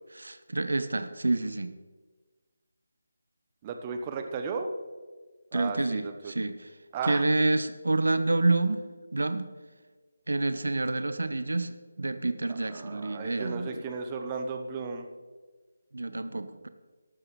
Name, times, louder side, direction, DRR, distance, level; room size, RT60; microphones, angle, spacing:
voice 1, 0.1-1.7 5.5-6.7 7.0-8.8 9.1-9.5 10.3-11.7 12.0-13.8 15.9-16.7, right 2 dB, 70° right, 11 dB, 0.8 m, -28 dB
voice 2, 3.6-4.7 5.5-6.3 6.9-7.3 12.5-15.1, right 4 dB, 20° right, 6 dB, 0.9 m, -35 dB
13.5 x 12.0 x 3.2 m, 1.4 s
figure-of-eight pair, 155°, 0 cm